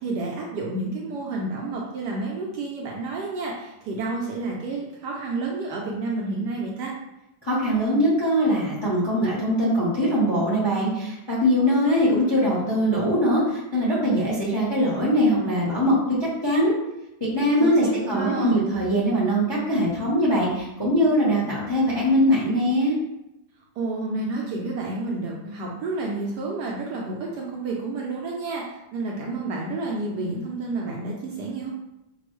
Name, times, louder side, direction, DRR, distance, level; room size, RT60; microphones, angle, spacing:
voice 1, 0.0-6.9 17.6-18.6 23.8-31.7, right 3 dB, 70° right, -2 dB, 1.0 m, -30 dB
voice 2, 7.4-16.7 17.2-22.9, equal, 25° left, -6 dB, 0.5 m, -22 dB
5.1 x 2.3 x 3.1 m, 0.89 s
omnidirectional pair, 2.2 m